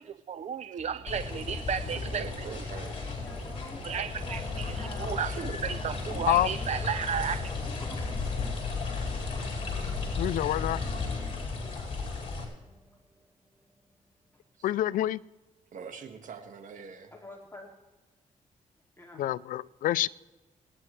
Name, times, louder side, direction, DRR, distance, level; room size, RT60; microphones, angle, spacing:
voice 1, 0.0-2.5 3.8-7.5, right 7 dB, 55° right, 0.6 m, -34 dB
sound 1, 0.8-13.9 14.2-14.3, equal, 5° right, 2.6 m, -50 dB
sound 2, 1.1-12.4, left 4 dB, 45° left, 5.1 m, -34 dB
voice 2, 1.9-3.0 5.2-5.6 14.6-14.7 15.7-17.1, right 6 dB, 75° right, 1.8 m, -42 dB
voice 3, 2.8-5.2 7.6-8.2 17.1-17.7 19.0-19.2, left 1 dB, 20° left, 2.5 m, -47 dB
voice 4, 10.2-10.8 14.6-15.2 19.2-20.1, left 13 dB, 90° left, 0.4 m, -27 dB
27.0 x 9.9 x 3.3 m
cardioid pair, 80°, 14 cm